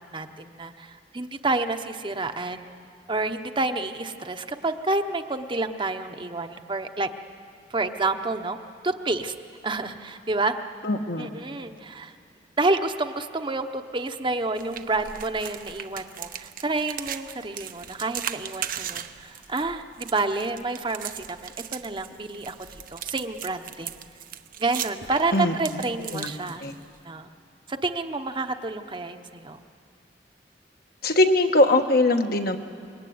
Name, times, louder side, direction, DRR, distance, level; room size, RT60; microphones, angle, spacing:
voice 1, 0.1-2.7 3.1-7.1 7.7-8.6 8.8-9.3 9.6-10.6 11.2-12.1 12.6-24.0 24.6-26.6 27.0-27.3 27.7-29.6, right 3 dB, 30° right, 7 dB, 1.0 m, -29 dB
voice 2, 10.8-11.3 25.3-25.5 26.1-26.3 26.6-26.7 31.0-32.6, left 2 dB, 60° left, 5 dB, 1.4 m, -21 dB
sound 1, 14.6-27.0, right 9 dB, 55° right, 0.9 m, -38 dB
26.0 x 22.5 x 9.4 m, 2.4 s
head